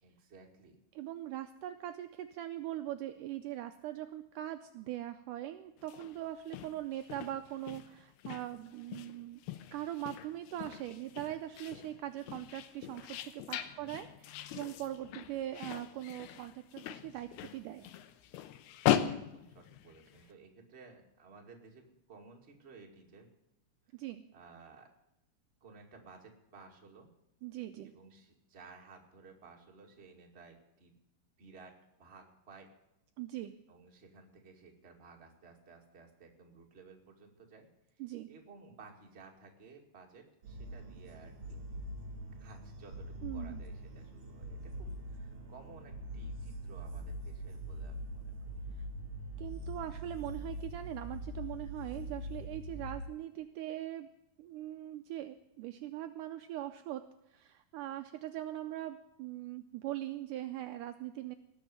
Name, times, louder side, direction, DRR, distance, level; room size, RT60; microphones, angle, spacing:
voice 1, 0.0-0.8 13.8-14.1 19.0-23.3 24.3-24.9 25.6-27.1 27.8-30.9 31.4-32.7 33.7-37.7 38.3-41.7 42.4-48.7, right 4 dB, 25° right, 1 dB, 1.6 m, -56 dB
voice 2, 1.0-9.4 9.7-17.9 23.9-24.2 27.4-27.9 33.2-33.5 38.0-38.3 43.2-43.6 49.4-54.1 54.4-57.0 57.3-61.3, right 13 dB, 85° right, 8 dB, 1.8 m, -41 dB
sound 1, 5.8-20.3, left 11 dB, 85° left, 2.8 m, -39 dB
sound 2, 40.4-53.0, equal, 45° right, 2.9 m, -43 dB
18.5 x 6.6 x 9.3 m, 0.86 s
omnidirectional pair, 4.4 m